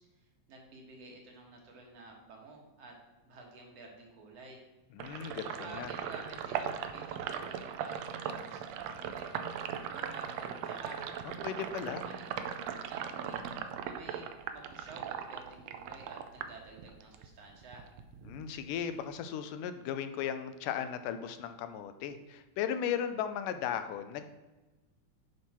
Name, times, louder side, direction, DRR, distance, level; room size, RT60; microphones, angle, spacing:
voice 1, 0.0-3.0 3.2-4.6 5.4-9.3 9.9-17.8, right 3 dB, 55° right, 1 dB, 2.3 m, -51 dB
voice 2, 5.0-5.4 5.7-5.9 11.4-12.1 18.3-24.2, left 9 dB, 85° left, 9 dB, 2.2 m, -36 dB
Sink (filling or washing), 5.0-17.3 17.6-19.0, right 8 dB, 85° right, 1.5 m, -39 dB
9.4 x 5.4 x 4.4 m, 1.1 s
omnidirectional pair, 3.7 m